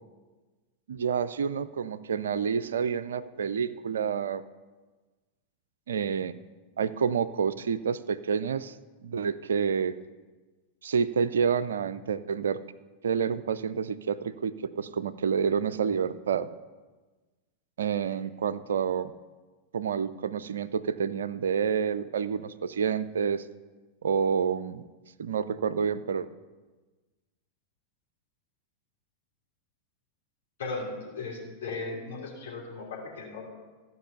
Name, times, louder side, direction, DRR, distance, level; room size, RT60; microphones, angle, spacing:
voice 1, 0.9-4.4 5.9-6.4 6.8-8.8 9.0-10.0 10.8-12.6 13.0-16.5 17.8-19.1 19.7-23.4 24.0-24.8 25.2-26.3, right 6 dB, 65° right, 14 dB, 0.4 m, -28 dB
voice 2, 30.6-33.5, left 3 dB, 60° left, -2 dB, 2.9 m, -37 dB
13.5 x 5.3 x 6.9 m, 1.3 s
figure-of-eight pair, 90°, 0 cm